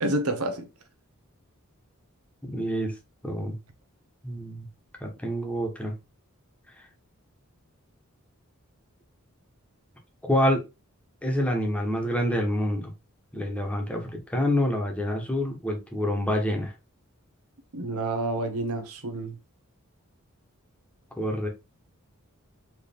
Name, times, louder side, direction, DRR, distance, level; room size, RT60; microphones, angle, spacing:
voice 1, 0.0-0.7 17.7-19.4, right 2 dB, 85° right, 1.0 m, -29 dB
voice 2, 2.4-2.9 3.2-3.5 4.2-4.7 5.0-5.9 10.2-10.6 11.2-12.8 13.3-16.7 21.1-21.5, equal, 5° left, 1.1 m, -27 dB
4.4 x 3.1 x 3.5 m
head